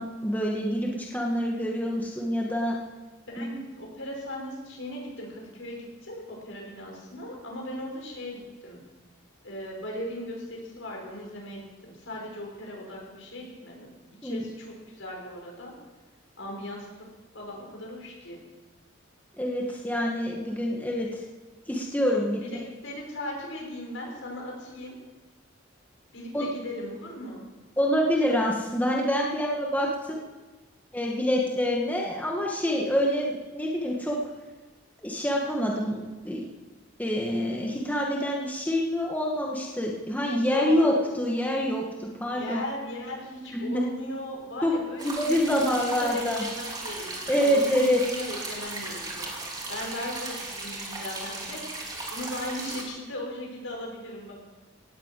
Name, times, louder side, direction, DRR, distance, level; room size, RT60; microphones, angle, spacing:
voice 1, 0.0-2.8 3.4-3.5 14.2-14.4 19.4-21.2 21.7-22.4 26.3-26.5 27.8-30.2 30.9-34.2 35.0-36.4 37.0-42.6 43.5-43.8 44.6-44.7 45.0-46.4 47.3-48.0, equal, 10° left, -2 dB, 1.8 m, -26 dB
voice 2, 3.3-8.8 9.4-13.9 14.2-15.7 16.4-16.9 17.3-18.4 22.4-25.0 26.1-27.4 40.5-41.1 42.3-49.3 49.7-51.6 52.1-54.3, left 1 dB, 75° left, -1 dB, 6.1 m, -38 dB
sound 1, 45.0-52.8, right 2 dB, 20° right, 2.9 m, -36 dB
18.0 x 8.3 x 8.5 m, 1.3 s
head